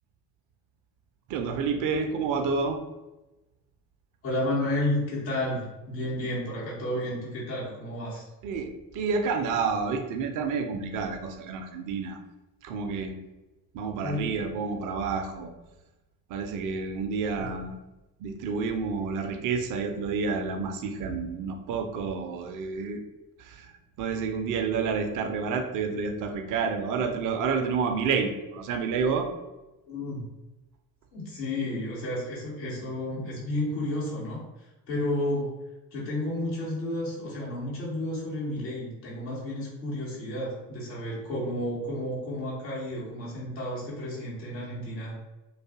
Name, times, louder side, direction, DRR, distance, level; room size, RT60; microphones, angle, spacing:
voice 1, 1.3-2.8 8.4-12.2 12.6-13.2 13.7-15.5 16.3-17.8 18.2-23.0 23.4-23.7 24.0-29.3, right 5 dB, 40° right, 5 dB, 0.4 m, -29 dB
voice 2, 4.2-8.2 14.0-14.2 17.4-17.5 29.9-30.2 31.1-34.4 34.9-35.6 35.9-45.2, left 1 dB, 85° left, -7 dB, 0.9 m, -31 dB
2.4 x 2.3 x 2.3 m, 1.0 s
figure-of-eight pair, 50°, 49 cm